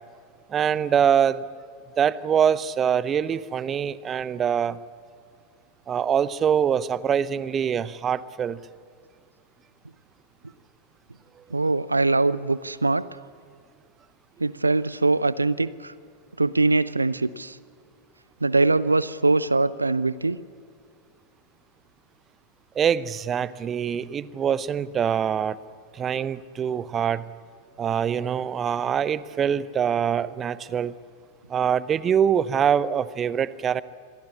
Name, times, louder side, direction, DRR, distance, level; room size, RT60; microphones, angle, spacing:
voice 1, 0.5-1.4 2.0-4.8 5.9-8.6 22.7-25.6 25.9-27.2 27.8-30.9 31.5-33.8, right 8 dB, 25° right, 18 dB, 0.8 m, -24 dB
voice 2, 11.5-13.0 14.4-15.9 16.4-17.6 18.4-20.4, right 3 dB, 80° right, 19 dB, 0.6 m, -22 dB
27.0 x 22.5 x 7.2 m, 2.3 s
figure-of-eight pair, 90°, 0 cm